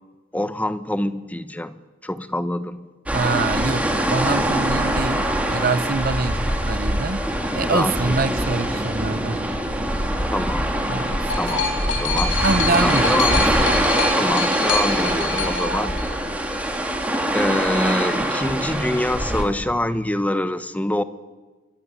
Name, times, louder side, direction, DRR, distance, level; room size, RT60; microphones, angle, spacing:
voice 1, 0.3-2.9 7.5-8.1 10.3-10.7 11.4-12.4 12.8-13.4 14.1-16.0 17.3-21.0, left 1 dB, 10° left, 11 dB, 1.0 m, -25 dB
sound 1, 3.1-19.4, right 1 dB, 5° right, 3.7 m, -23 dB
voice 2, 3.1-7.2 7.5-9.4 10.9-11.3 11.9-12.0 12.4-13.5, right 3 dB, 50° right, 14 dB, 1.0 m, -25 dB
sound 2, 10.7-16.6 17.5-17.6, left 4 dB, 70° left, 5.0 m, -27 dB
24.5 x 23.5 x 9.9 m, 1.3 s
head